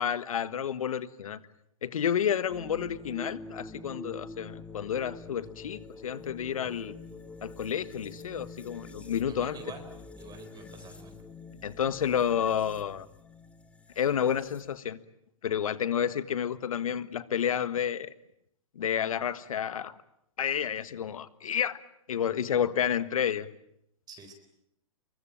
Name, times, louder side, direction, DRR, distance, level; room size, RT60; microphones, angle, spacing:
voice 1, 0.0-1.4 1.8-6.9 7.4-9.6 11.6-13.1 14.0-15.0 15.4-18.1 18.7-19.9 20.4-21.8 22.1-23.5, left 8 dB, 75° left, 15 dB, 1.5 m, -30 dB
sound 1, 2.5-14.8, left 3 dB, 5° left, 1.7 m, -46 dB
voice 2, 9.3-9.8 10.2-11.1 22.5-22.7 24.1-24.3, right 5 dB, 20° right, 7 dB, 4.1 m, -46 dB
25.5 x 23.5 x 9.1 m, 0.78 s
hypercardioid pair, 120°, 18 cm